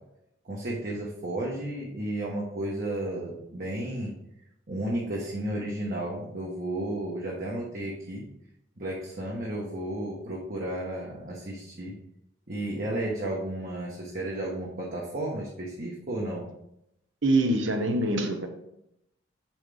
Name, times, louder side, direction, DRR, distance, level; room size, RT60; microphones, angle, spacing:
voice 1, 0.4-4.1 4.7-8.3 8.8-12.0 12.5-16.5, right 1 dB, 50° right, -4 dB, 1.2 m, -33 dB
voice 2, 17.2-18.5, right 2 dB, 75° right, 6 dB, 1.0 m, -24 dB
7.1 x 5.8 x 3.4 m, 0.80 s
head